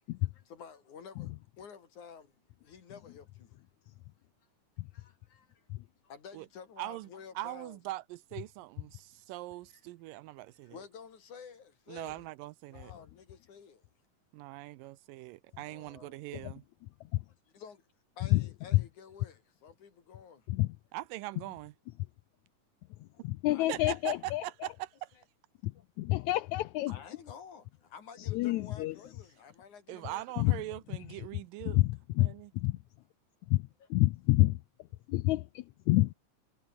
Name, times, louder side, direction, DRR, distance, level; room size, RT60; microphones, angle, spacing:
voice 1, 0.3-3.5 4.9-5.7 6.0-7.8 9.7-9.8 10.6-12.3 12.7-13.8 15.6-16.2 17.3-17.8 18.2-20.5 23.1-23.2 23.5-24.2 25.7-25.8 26.2-26.3 26.9-30.6 33.8-33.9, left 6 dB, 60° left, 4.5 m, -51 dB
voice 2, 6.8-7.1 7.4-10.8 11.9-12.9 14.3-16.6 20.9-21.7 23.7-25.2 29.9-31.8 32.2-32.5, right 17 dB, 80° right, 2.3 m, -41 dB
voice 3, 23.0-24.4 25.6-25.7 26.0-27.0 28.3-28.9 30.4-30.6 31.6-32.8 33.5-34.6 35.1-36.1, left 18 dB, 85° left, 1.6 m, -28 dB
omnidirectional pair, 4.0 m